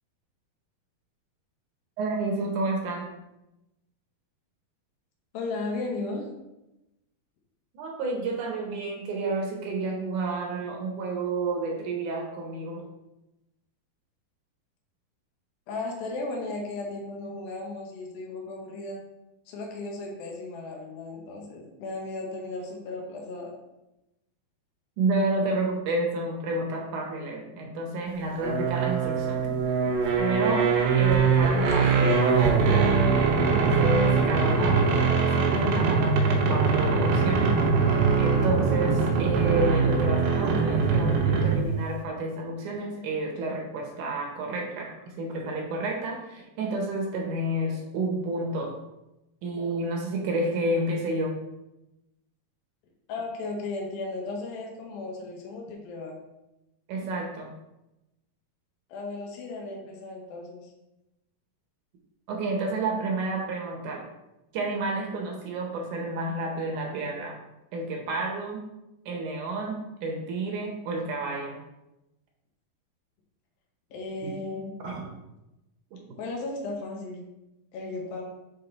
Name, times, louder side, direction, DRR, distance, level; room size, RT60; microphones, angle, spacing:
voice 1, 2.0-3.1 7.7-12.8 25.0-30.7 31.0-44.9 45.2-48.7 49.4-51.4 56.9-57.5 62.3-64.0 64.5-67.4 67.7-68.6 69.1-71.6 74.2-74.3 74.8-75.1 75.9-76.0, right 2 dB, 70° right, 0 dB, 2.1 m, -30 dB
voice 2, 5.3-6.3 15.7-19.0 19.5-23.5 53.1-56.2 58.9-60.7 73.9-74.7 76.2-77.3 77.7-78.2, left 3 dB, 80° left, 0 dB, 2.8 m, -35 dB
sound 1, 28.4-41.8, right 5 dB, 85° right, 2.9 m, -22 dB
7.3 x 3.6 x 3.9 m, 0.94 s
omnidirectional pair, 4.2 m